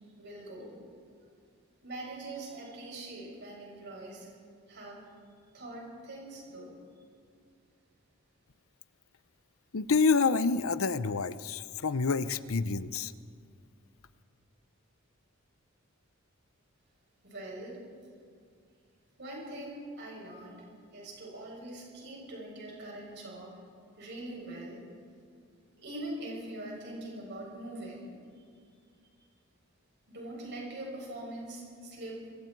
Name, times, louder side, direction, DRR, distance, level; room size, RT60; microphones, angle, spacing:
voice 1, 0.2-0.8 1.8-4.3 4.7-5.0 5.5-6.7 17.2-17.8 19.2-20.6 20.9-23.5 24.0-24.8 25.8-28.1 30.1-32.2, right 1 dB, 50° right, -3 dB, 7.7 m, -42 dB
voice 2, 9.7-13.1, left 4 dB, 65° left, 15 dB, 0.7 m, -28 dB
25.5 x 23.0 x 4.7 m, 2.3 s
head